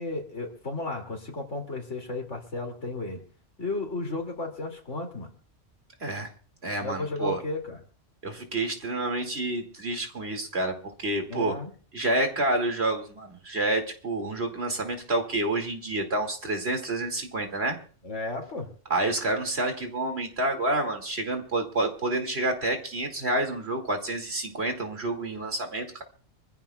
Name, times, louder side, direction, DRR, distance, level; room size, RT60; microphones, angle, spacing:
voice 1, 0.0-3.2 3.6-5.3 6.8-7.8 11.3-11.7 18.0-18.7, left 2 dB, 70° left, 2 dB, 3.0 m, -33 dB
voice 2, 6.6-7.4 8.2-10.7 11.0-11.5 11.9-17.8 18.9-26.0, right 2 dB, 55° right, 4 dB, 2.6 m, -28 dB
25.5 x 15.0 x 2.3 m, 0.42 s
omnidirectional pair, 1.3 m